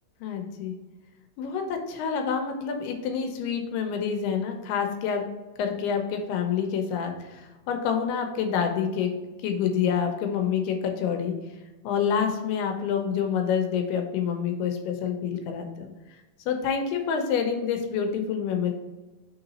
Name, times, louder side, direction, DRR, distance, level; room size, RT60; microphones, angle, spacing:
voice 1, 0.2-0.7 1.4-5.2 5.6-9.1 9.4-11.3 11.8-15.9 16.5-18.7, left 7 dB, 85° left, 4 dB, 2.7 m, -27 dB
6.0 x 3.9 x 4.1 m, 1.2 s
omnidirectional pair, 4.6 m